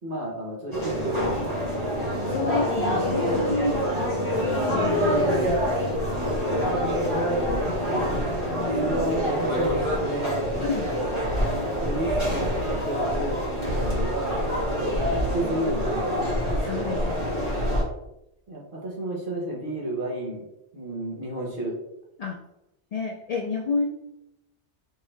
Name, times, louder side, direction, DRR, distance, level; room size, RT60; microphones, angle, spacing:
voice 1, 0.0-1.3 2.9-3.0 6.4-6.8 7.9-8.1 8.7-10.5 11.4-15.0 15.3-16.2 18.5-20.4 20.7-21.8, right 1 dB, 50° right, -2 dB, 1.2 m, -32 dB
sound 1, 0.7-17.8, equal, 25° right, 1.4 m, -26 dB
voice 2, 2.3-4.0 4.3-5.7 7.4-7.8 10.6-10.9 16.6-17.8 22.2-22.4 22.9-23.9, left 4 dB, 70° left, 1 dB, 0.3 m, -30 dB
4.6 x 2.7 x 3.2 m, 0.89 s
omnidirectional pair, 1.2 m